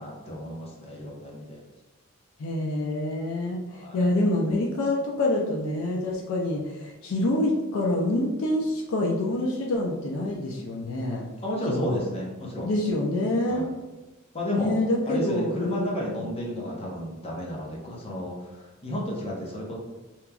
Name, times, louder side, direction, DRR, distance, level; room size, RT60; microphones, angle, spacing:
voice 1, 0.0-1.6 3.7-4.1 11.4-12.7 13.5-13.7 14.3-19.8, equal, 30° left, -3 dB, 0.6 m, -32 dB
voice 2, 2.4-11.2 11.7-12.0 12.6-13.7 14.5-15.9 16.2-16.3, left 1 dB, 70° left, -1 dB, 0.4 m, -26 dB
2.9 x 2.3 x 2.2 m, 1.1 s
head